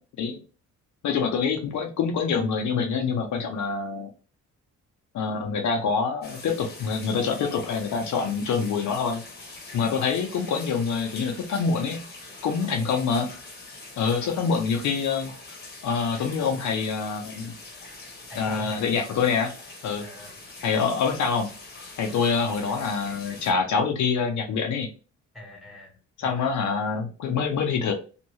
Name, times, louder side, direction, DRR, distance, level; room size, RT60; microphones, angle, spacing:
voice 1, 1.0-4.1 5.1-9.2 9.7-12.0 12.4-13.3 14.0-15.3 15.8-17.5 18.3-19.5 19.8-20.0 20.6-21.5 22.0-24.9 26.2-27.9, left 5 dB, 70° left, 3 dB, 0.7 m, -26 dB
sound 1, 6.2-23.5, left 2 dB, 35° left, 1.1 m, -43 dB
voice 2, 18.3-18.8 20.0-20.3 25.3-26.5, equal, ahead, -2 dB, 1.4 m, -43 dB
2.7 x 2.6 x 3.1 m, 0.36 s
cardioid pair, 90°, 30 cm